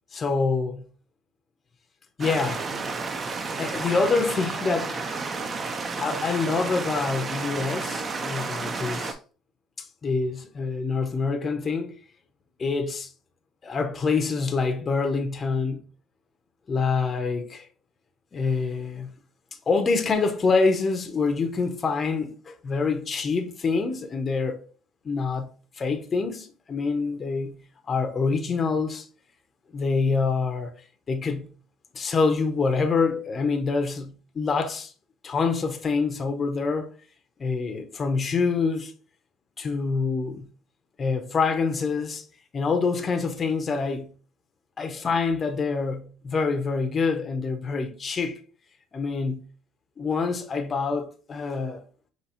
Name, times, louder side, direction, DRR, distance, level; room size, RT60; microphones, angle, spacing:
voice 1, 0.1-0.9 2.2-2.7 3.6-5.0 6.0-9.2 9.8-11.9 12.6-13.1 13.6-15.8 16.7-17.7 18.3-19.1 19.7-24.7 25.0-25.5 25.8-27.6 27.9-29.1 29.7-31.5 31.9-34.9 35.2-36.9 37.4-38.9 39.6-40.5 41.0-42.2 42.5-44.1 44.8-48.4 48.9-49.4 50.0-51.8, left 4 dB, 30° left, 0.6 m, -26 dB
sound 1, 2.2-9.1, right 4 dB, 30° right, 0.5 m, -31 dB
5.4 x 2.8 x 2.9 m
cardioid pair, 125°, 0 cm